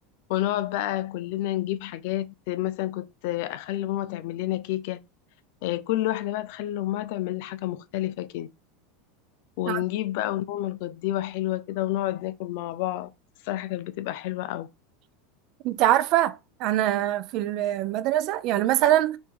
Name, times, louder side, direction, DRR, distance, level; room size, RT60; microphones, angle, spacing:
voice 1, 0.3-5.0 5.6-8.5 9.6-13.1 13.4-14.7, left 14 dB, 65° left, 0.3 m, -29 dB
voice 2, 15.6-19.2, right 13 dB, 55° right, 0.4 m, -23 dB
2.7 x 2.5 x 3.7 m
supercardioid pair, 115°, 0 cm